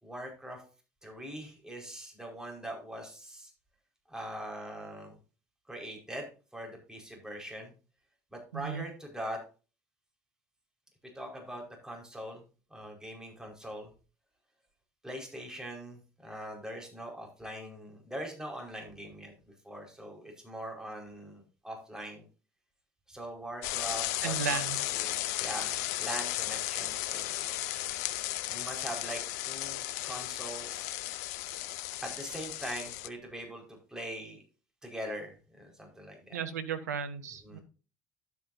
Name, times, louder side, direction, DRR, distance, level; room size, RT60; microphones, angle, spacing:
voice 1, 0.0-0.6 1.0-3.5 4.1-5.2 5.7-7.7 8.3-9.4 11.1-12.4 12.7-13.9 15.0-19.3 19.6-22.2 23.1-27.5 28.5-31.3 32.0-34.4 34.8-36.4 37.4-37.6, right 1 dB, 5° right, 1 dB, 5.1 m, -42 dB
voice 2, 8.5-8.8 24.2-24.8 36.3-37.6, right 7 dB, 85° right, 10 dB, 1.0 m, -34 dB
sound 1, 23.6-33.1, left 16 dB, 75° left, 0.6 m, -35 dB
12.0 x 8.3 x 2.7 m, 0.34 s
hypercardioid pair, 60°, 9 cm